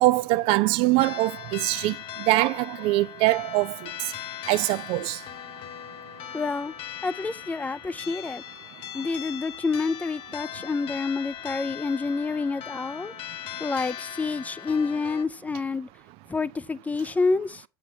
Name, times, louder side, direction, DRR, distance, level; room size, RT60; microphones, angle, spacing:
voice 1, 0.0-1.9 2.3-3.7 4.5-5.2, right 18 dB, 50° right, 0.4 m, -23 dB
sound 1, 1.0-15.3, left 11 dB, 50° left, 0.8 m, -39 dB
voice 2, 6.3-6.7 7.0-8.4 8.9-13.1 13.6-15.9 16.3-17.6, left 4 dB, 10° left, 0.5 m, -28 dB
8.1 x 5.8 x 4.4 m
hypercardioid pair, 75°, 12 cm